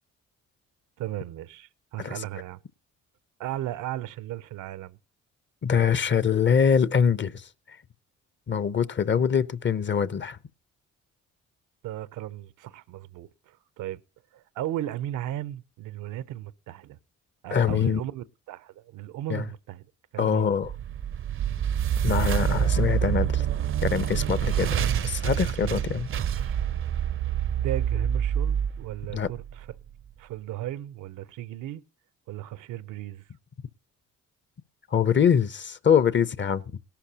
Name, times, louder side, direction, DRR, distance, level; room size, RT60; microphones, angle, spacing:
voice 1, 1.0-2.6 3.4-5.0 11.8-14.0 14.3-17.0 17.4-19.9 20.1-20.5 24.7-24.9 25.6-25.8 27.6-29.7 30.2-31.8 32.3-33.2, right 13 dB, 85° right, 0.7 m, -36 dB
voice 2, 5.6-7.5 8.5-10.4 17.5-18.0 19.3-19.4 20.2-20.7 22.0-23.5 23.8-26.1 29.1-29.3 34.9-36.6, left 7 dB, 40° left, 0.7 m, -24 dB
sound 1, 20.6-29.8, right 9 dB, 45° right, 0.5 m, -27 dB
18.0 x 12.0 x 2.9 m
cardioid pair, 90°, 30 cm